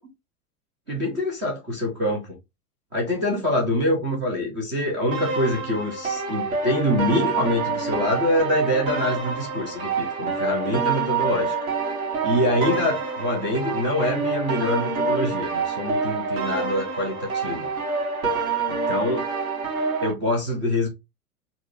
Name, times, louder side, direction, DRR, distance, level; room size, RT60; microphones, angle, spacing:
voice 1, 0.9-2.4 2.9-11.6 12.2-17.7 18.7-19.2 20.0-20.9, left 1 dB, 10° right, 0.3 m, -25 dB
sound 1, 5.1-20.1, right 4 dB, 65° right, 1.6 m, -27 dB
4.6 x 2.1 x 2.8 m
figure-of-eight pair, 95°, 45 cm